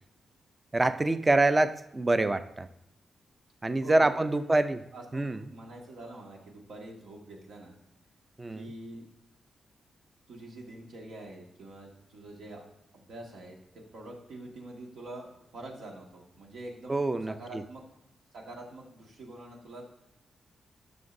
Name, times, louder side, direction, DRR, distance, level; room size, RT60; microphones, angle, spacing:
voice 1, 0.7-2.7 3.6-4.8 5.1-5.4 8.4-8.7 16.9-17.6, right 2 dB, 20° right, 11 dB, 0.4 m, -26 dB
voice 2, 3.8-7.8 8.5-9.0 10.3-12.6 12.9-15.3 15.5-17.0 17.3-17.8 18.3-19.8, right 1 dB, 85° right, 0 dB, 1.8 m, -45 dB
13.0 x 6.1 x 2.6 m, 0.85 s
wide cardioid pair, 155°, 0 cm